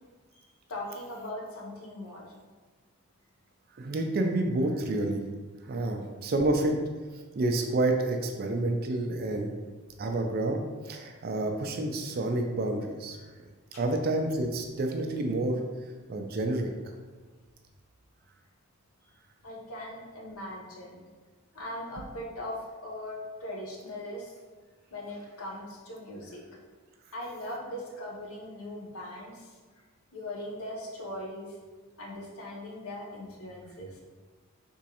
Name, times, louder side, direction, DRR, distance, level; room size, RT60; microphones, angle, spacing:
voice 1, 0.7-2.2 5.6-5.7 13.7-13.8 16.0-16.3 19.4-21.1 21.5-24.3 24.9-26.4 27.1-29.5 30.1-31.6 32.0-34.0, left 1 dB, 80° left, -2 dB, 0.7 m, -40 dB
voice 2, 3.8-5.2 5.7-6.8 7.4-9.5 10.0-13.2 13.7-15.6 16.1-16.7, right 2 dB, 45° right, 4 dB, 0.3 m, -29 dB
3.6 x 3.0 x 2.9 m, 1.4 s
head